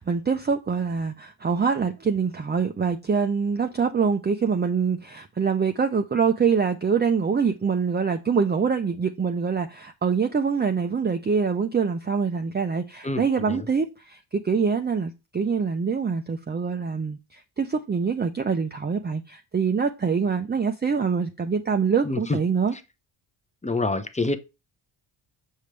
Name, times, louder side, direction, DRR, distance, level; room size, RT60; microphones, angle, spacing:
voice 1, 0.0-22.7, right 5 dB, 20° right, 0.6 m, -25 dB
voice 2, 23.6-24.4, left 2 dB, 15° left, 0.8 m, -26 dB
6.5 x 5.2 x 3.3 m
supercardioid pair, 65°, 50 cm